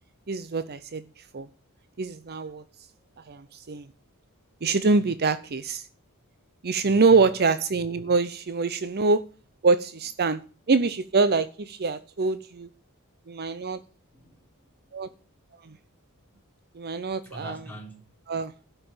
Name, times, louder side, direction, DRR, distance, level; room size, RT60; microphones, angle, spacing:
voice 1, 0.3-1.0 1.3-1.5 2.0-2.6 3.3-3.9 4.6-5.9 6.6-9.2 9.6-10.4 10.7-12.7 13.3-13.8 14.9-15.1 15.7-15.8 16.8-17.6 18.3-18.5, right 4 dB, 45° right, 0.6 m, -24 dB
voice 2, 3.0-3.4 5.0-5.2 6.8-7.3 14.1-14.7 17.2-18.0, right 1 dB, 10° left, 3.3 m, -44 dB
12.0 x 5.8 x 8.6 m
head